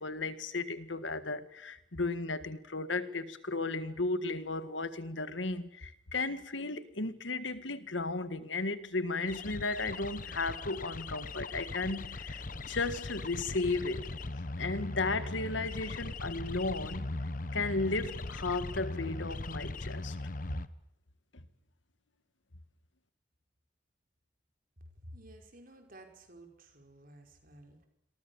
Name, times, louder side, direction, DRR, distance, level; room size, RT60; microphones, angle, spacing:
voice 1, 0.0-14.1 14.6-17.1 17.5-20.2, left 3 dB, 85° left, 1.8 m, -34 dB
sound 1, 9.3-20.7, left 2 dB, 45° left, 1.1 m, -40 dB
voice 2, 25.0-27.8, right 1 dB, 50° right, 5.2 m, -53 dB
27.5 x 23.0 x 7.2 m
head